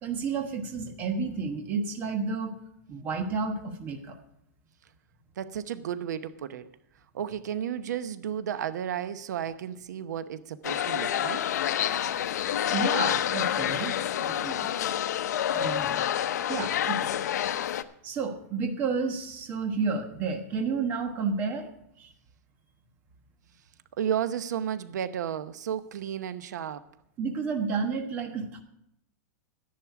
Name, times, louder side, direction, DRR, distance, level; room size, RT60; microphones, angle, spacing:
voice 1, 0.0-2.5 2.9-4.2 12.7-14.7 15.5-15.9 16.5-17.1 18.0-21.7 22.0-22.1 27.2-28.6, right 4 dB, 20° right, 1.2 m, -31 dB
voice 2, 5.4-6.7 7.1-11.4 24.0-26.8, right 9 dB, 85° right, 0.9 m, -33 dB
sound 1, 10.6-17.8, left 10 dB, 75° left, 0.8 m, -28 dB
12.5 x 10.5 x 4.7 m
supercardioid pair, 180°, 9 cm